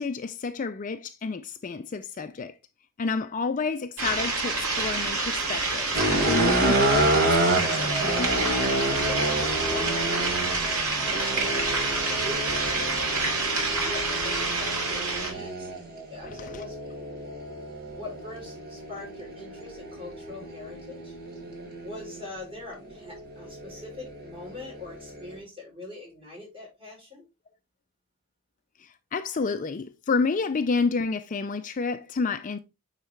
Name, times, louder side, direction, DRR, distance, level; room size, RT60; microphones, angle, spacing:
voice 1, 0.0-2.5 3.0-8.4 15.4-15.5 16.4-16.5 28.8-32.6, left 4 dB, 35° left, 0.4 m, -30 dB
sound 1, 4.0-15.3, right 3 dB, 75° right, 2.6 m, -27 dB
sound 2, 5.9-22.3 22.9-25.4, right 1 dB, 45° right, 1.5 m, -29 dB
voice 2, 9.1-10.5 11.0-11.7 12.0-13.2 13.8-15.7 16.1-16.8 17.9-21.2 21.8-27.2, left 2 dB, 25° right, 4.8 m, -42 dB
9.1 x 4.1 x 3.3 m
head